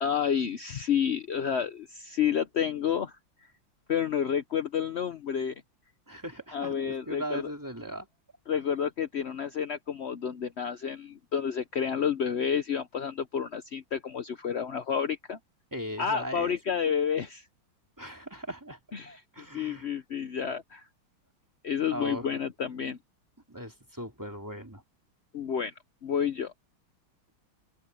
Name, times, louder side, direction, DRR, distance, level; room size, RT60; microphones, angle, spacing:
voice 1, 0.0-3.2 3.9-5.5 6.5-7.5 8.5-15.4 16.0-17.4 18.9-20.9 21.6-23.0 25.3-25.7 26.0-26.5, left 8 dB, 65° left, 0.6 m, -30 dB
voice 2, 6.1-8.1 15.7-16.6 18.0-18.8 19.1-20.0 21.9-22.3 23.5-24.8, right 1 dB, 10° right, 2.5 m, -38 dB
open air
omnidirectional pair, 2.2 m